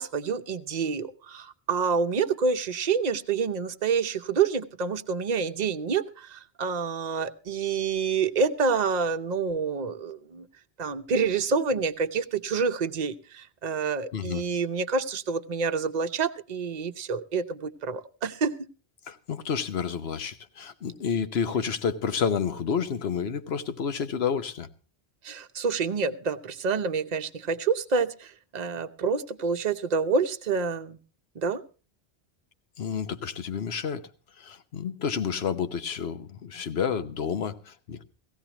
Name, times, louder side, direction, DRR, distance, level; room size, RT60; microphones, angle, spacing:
voice 1, 0.0-10.5 10.8-18.7 25.2-31.0 31.4-31.6, right 5 dB, 45° right, 0.8 m, -28 dB
voice 2, 14.1-14.4 19.1-24.7 32.8-34.1 34.4-38.0, left 7 dB, 70° left, 1.2 m, -30 dB
18.0 x 15.5 x 2.9 m
omnidirectional pair, 1.1 m